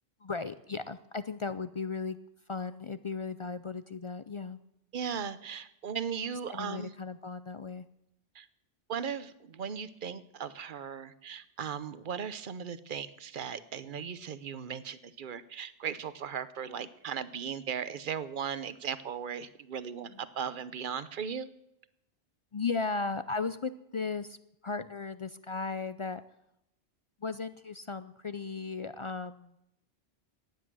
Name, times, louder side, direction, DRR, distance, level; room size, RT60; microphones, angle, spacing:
voice 1, 0.2-2.2 2.5-4.6 6.5-7.9 16.7-16.8 20.1-20.2 22.5-24.4 24.6-26.2 27.2-29.5, left 4 dB, 50° left, 13 dB, 0.3 m, -36 dB
voice 2, 4.9-6.9 8.4-8.5 8.9-21.5, right 7 dB, 50° right, 14 dB, 0.9 m, -37 dB
16.0 x 10.5 x 6.2 m, 0.82 s
omnidirectional pair, 1.2 m